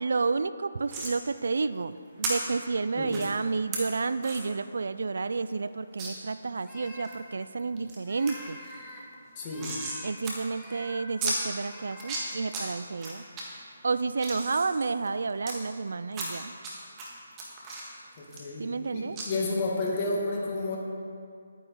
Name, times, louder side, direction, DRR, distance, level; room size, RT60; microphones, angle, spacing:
voice 1, 0.0-8.6 10.0-13.2 13.8-16.5 18.6-19.2, right 4 dB, 70° right, 14 dB, 0.3 m, -30 dB
sound 1, 0.9-1.1 2.2-2.3 3.1-3.3 3.7-3.8 4.2-4.4 4.8-4.9 5.2-5.3 6.0-6.1 6.6-7.2 7.6-8.0 8.3-8.4 8.6-10.0 10.2-10.3 10.6-10.7 11.2-11.4 11.9-12.6 13.0-13.4 13.9-15.5 16.1-16.7 17.0-18.9 19.2-19.3, right 3 dB, 20° right, 1.7 m, -34 dB
sound 2, 6.6-7.2 8.0-9.0 9.4-10.1 10.5-11.1 11.5-12.3 13.2-13.6 14.0-14.4, left 1 dB, 5° left, 1.3 m, -47 dB
voice 2, 9.4-9.7 18.2-20.8, left 2 dB, 30° left, -3 dB, 2.0 m, -31 dB
11.5 x 9.2 x 3.8 m, 2.3 s
figure-of-eight pair, 155°, 0 cm